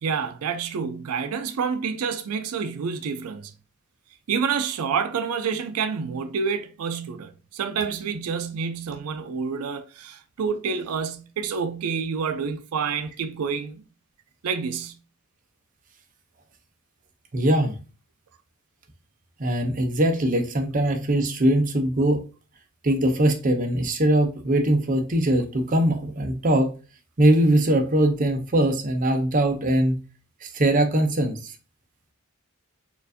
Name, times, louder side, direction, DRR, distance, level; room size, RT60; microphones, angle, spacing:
voice 1, 0.0-3.5 4.3-13.8 14.4-15.0, right 6 dB, 85° right, 0.4 m, -28 dB
voice 2, 17.3-17.7 19.4-22.2 22.8-26.8 27.2-30.0 30.4-31.5, right 1 dB, 40° right, 0.6 m, -21 dB
4.4 x 2.5 x 2.6 m
head